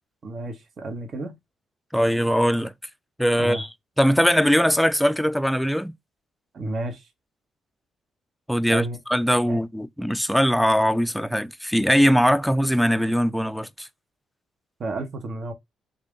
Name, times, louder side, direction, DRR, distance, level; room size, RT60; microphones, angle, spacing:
voice 1, 0.2-1.4 3.4-3.6 6.5-7.1 8.7-9.0 9.4-9.6 14.8-15.5, right 2 dB, 50° right, 0.9 m, -31 dB
voice 2, 1.9-2.7 3.2-3.7 4.0-5.9 8.5-13.9, equal, ahead, 0.3 m, -21 dB
3.5 x 2.4 x 3.6 m
cardioid pair, 90°, 0 cm